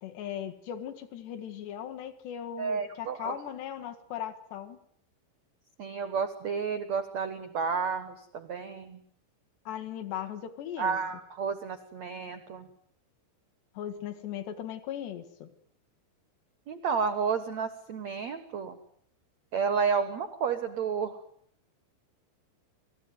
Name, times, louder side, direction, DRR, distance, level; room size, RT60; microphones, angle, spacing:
voice 1, 0.0-4.8 9.7-11.0 13.8-15.5, left 10 dB, 65° left, 6 dB, 3.8 m, -38 dB
voice 2, 2.6-3.3 5.8-9.0 10.8-12.7 16.7-18.8 19.5-21.2, right 6 dB, 75° right, 10 dB, 1.6 m, -31 dB
27.0 x 19.0 x 9.5 m, 0.67 s
omnidirectional pair, 5.5 m